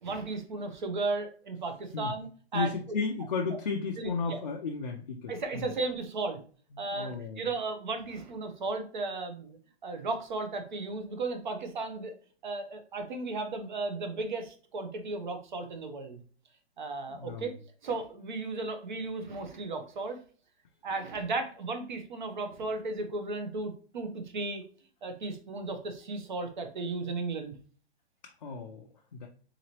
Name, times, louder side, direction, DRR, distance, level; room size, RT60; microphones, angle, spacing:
voice 1, 0.0-2.7 4.0-4.4 5.3-6.4 6.8-12.1 12.4-16.2 16.8-17.5 17.8-20.2 20.8-24.6 25.0-27.5, right 3 dB, 45° right, 6 dB, 0.7 m, -35 dB
voice 2, 2.5-5.7 6.9-7.4 17.1-17.5 28.4-28.9 29.2-29.3, left 4 dB, 40° left, 1 dB, 0.4 m, -34 dB
3.9 x 2.9 x 2.9 m, 0.43 s
hypercardioid pair, 175°, 33 cm